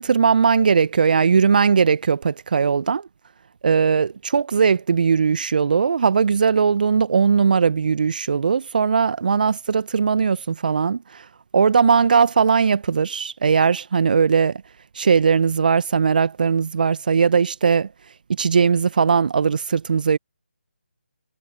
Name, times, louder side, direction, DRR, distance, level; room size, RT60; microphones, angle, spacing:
voice 1, 0.0-3.1 3.6-11.2 11.5-14.6 14.9-17.9 18.3-20.2, right 6 dB, 50° right, 1.4 m, -19 dB
figure-of-eight pair, 150°, 6 cm